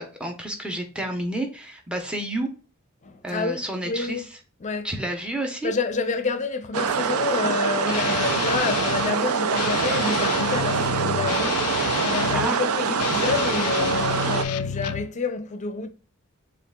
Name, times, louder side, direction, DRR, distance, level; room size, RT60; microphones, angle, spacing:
voice 1, 0.0-2.5 3.2-4.3 4.8-5.7 8.0-8.2 12.3-12.6, right 1 dB, 5° right, 0.8 m, -30 dB
voice 2, 3.0-4.2 4.6-4.9 5.6-11.6 12.0-15.9, left 4 dB, 35° left, 0.5 m, -28 dB
sound 1, 6.7-14.4, right 6 dB, 80° right, 0.4 m, -24 dB
Guitar, 7.8-9.2 9.5-12.5 12.9-15.1, left 9 dB, 85° left, 0.3 m, -30 dB
6.6 x 2.5 x 2.2 m
head